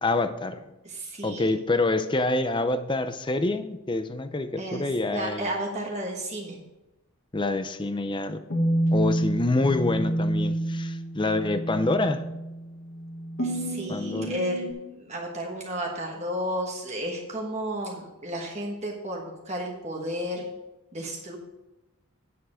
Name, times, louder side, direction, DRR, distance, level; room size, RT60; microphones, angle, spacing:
voice 1, 0.0-0.7 1.2-5.5 7.3-8.4 8.9-12.2 13.9-14.3, left 2 dB, 20° left, 10 dB, 0.5 m, -26 dB
voice 2, 0.8-1.5 4.6-6.6 13.4-20.5 20.9-21.4, equal, 30° right, 0 dB, 1.3 m, -33 dB
sound 1, 8.5-14.7, right 1 dB, 55° left, 1.7 m, -28 dB
9.3 x 6.6 x 5.0 m, 0.99 s
head